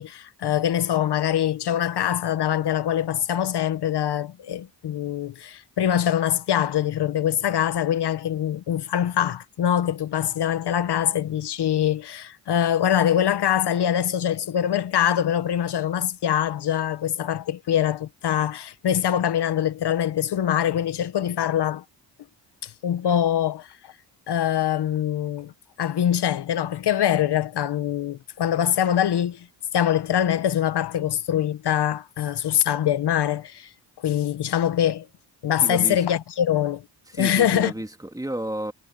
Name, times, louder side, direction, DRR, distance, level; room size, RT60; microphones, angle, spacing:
voice 1, 0.0-21.8 22.6-23.9 24.3-25.5 25.8-29.5 29.7-33.7 34.0-35.1 35.4-36.8 37.2-37.7, left 10 dB, 60° left, 1.0 m, -23 dB
voice 2, 35.6-36.0 37.1-38.7, right 1 dB, 10° right, 2.1 m, -31 dB
cardioid pair, 115°, 45 cm